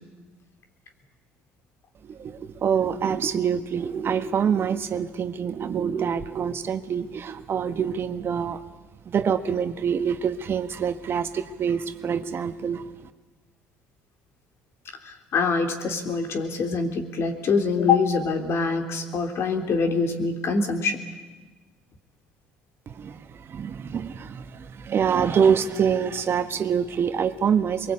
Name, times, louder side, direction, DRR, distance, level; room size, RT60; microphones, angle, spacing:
voice 1, 2.0-8.6 9.0-12.9 22.9-27.9, right 7 dB, 45° right, 9 dB, 1.4 m, -25 dB
voice 2, 15.0-21.0, left 4 dB, 55° left, 5 dB, 3.5 m, -24 dB
23.0 x 22.5 x 8.7 m, 1.3 s
hypercardioid pair, 70°, 5 cm